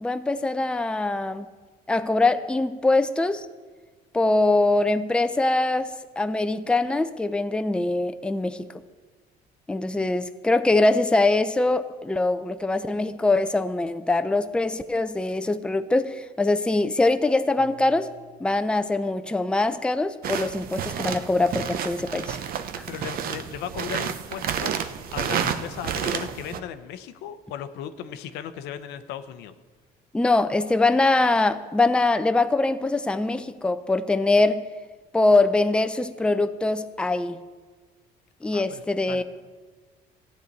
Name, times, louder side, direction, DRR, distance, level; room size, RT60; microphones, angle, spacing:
voice 1, 0.0-1.5 1.9-3.5 4.1-8.7 9.7-18.1 18.4-22.4 30.1-34.6 35.1-37.4 38.4-39.2, left 2 dB, 5° left, 10 dB, 0.5 m, -23 dB
sound 1, 20.2-26.6, right 8 dB, 60° right, 0.8 m, -30 dB
voice 2, 22.9-24.8 25.1-29.5 38.5-39.2, left 9 dB, 85° left, 10 dB, 0.7 m, -36 dB
14.5 x 9.1 x 4.1 m, 1.4 s
cardioid pair, 110°, 17 cm